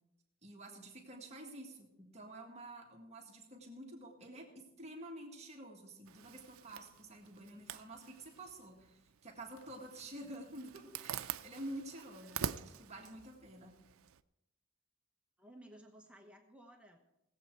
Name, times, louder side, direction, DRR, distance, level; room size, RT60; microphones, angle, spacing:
voice 1, 0.4-13.7, right 1 dB, 35° right, 0 dB, 1.8 m, -49 dB
Zipper (clothing), 6.1-14.2, right 9 dB, 85° right, 0.5 m, -46 dB
voice 2, 12.2-12.8 15.4-17.0, right 1 dB, 5° right, 2 dB, 1.1 m, -58 dB
18.5 x 7.9 x 4.7 m, 0.90 s
head